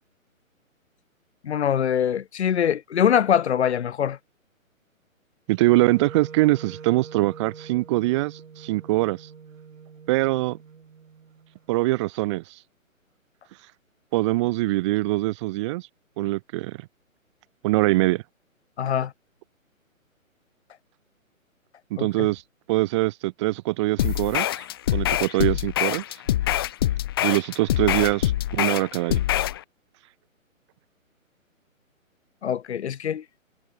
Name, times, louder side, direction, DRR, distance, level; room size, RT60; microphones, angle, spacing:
voice 1, 1.4-4.2 18.8-19.1 22.0-22.3 32.4-33.2, left 9 dB, 50° left, 1.9 m, -23 dB
voice 2, 5.5-9.2 10.1-10.6 11.7-12.4 14.1-15.8 16.2-16.8 17.6-18.2 21.9-22.4 22.7-24.6 24.9-26.0 27.2-29.2, right 20 dB, 20° right, 1.0 m, -23 dB
Wind instrument woodwind instrument, 5.6-11.7, right 6 dB, 65° right, 5.6 m, -44 dB
sound 1, 24.0-29.6, left 13 dB, 20° left, 0.6 m, -24 dB
figure-of-eight pair, 140°, 41 cm